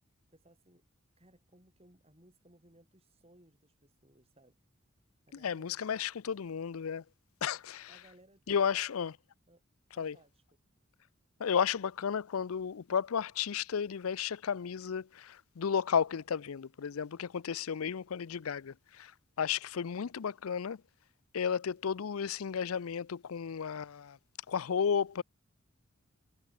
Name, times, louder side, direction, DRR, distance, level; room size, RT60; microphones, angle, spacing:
voice 1, 0.3-0.8 1.2-4.6 5.3-5.9 7.5-7.6 7.9-8.4 8.7-8.9 9.5-9.6 9.9-10.4, right 1 dB, 30° right, 6.5 m, -62 dB
voice 2, 5.4-7.0 7.4-7.9 8.5-9.1 10.0-10.1 11.4-19.1 19.4-20.8 21.3-24.2 24.5-25.2, left 7 dB, 80° left, 0.5 m, -33 dB
head